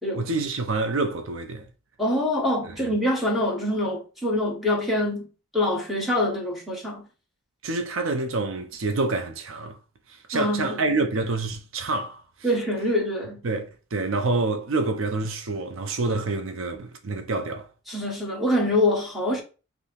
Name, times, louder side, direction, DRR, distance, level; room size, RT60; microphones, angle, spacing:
voice 1, 0.1-1.7 2.8-2.9 7.6-9.8 10.1-12.2 13.4-17.7, right 3 dB, 70° right, 0.5 m, -27 dB
voice 2, 2.0-7.1 10.3-10.8 12.4-13.4 17.9-19.4, left 1 dB, ahead, 1.0 m, -25 dB
5.4 x 2.1 x 3.3 m
head